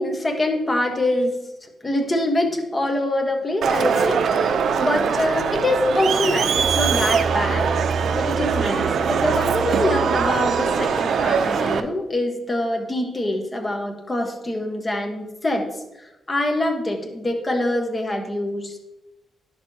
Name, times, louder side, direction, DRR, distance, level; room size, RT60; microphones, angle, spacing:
voice 1, 0.0-18.8, left 1 dB, 20° left, 2 dB, 1.3 m, -25 dB
Crowd, 3.6-11.8, right 6 dB, 70° right, 0.5 m, -21 dB
10.5 x 6.6 x 2.8 m, 0.96 s
cardioid pair, 105°, 0 cm